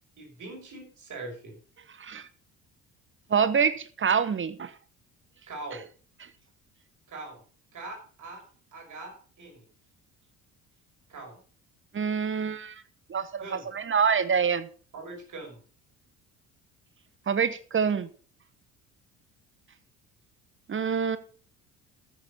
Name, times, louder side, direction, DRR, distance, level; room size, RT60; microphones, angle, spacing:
voice 1, 0.2-1.5 5.5-5.8 7.1-7.4 7.7-8.4 8.7-9.6 11.1-11.4 13.4-13.7 14.9-15.6, right 2 dB, 45° right, 6.0 m, -41 dB
voice 2, 2.0-2.3 3.3-4.7 11.9-12.8 13.1-14.7 17.3-18.1 20.7-21.2, right 6 dB, 30° right, 1.1 m, -26 dB
14.0 x 7.1 x 5.4 m
figure-of-eight pair, 55°, 43 cm